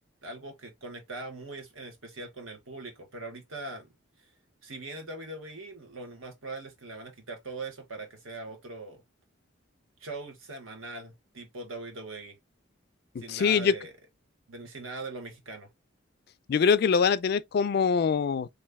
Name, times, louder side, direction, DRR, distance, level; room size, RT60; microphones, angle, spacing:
voice 1, 0.2-3.9 4.6-9.0 10.0-12.4 13.2-13.9 14.5-15.7, right 2 dB, 85° right, 1.3 m, -41 dB
voice 2, 13.3-13.7 16.5-18.6, left 6 dB, 50° left, 0.3 m, -24 dB
3.1 x 2.5 x 3.4 m
head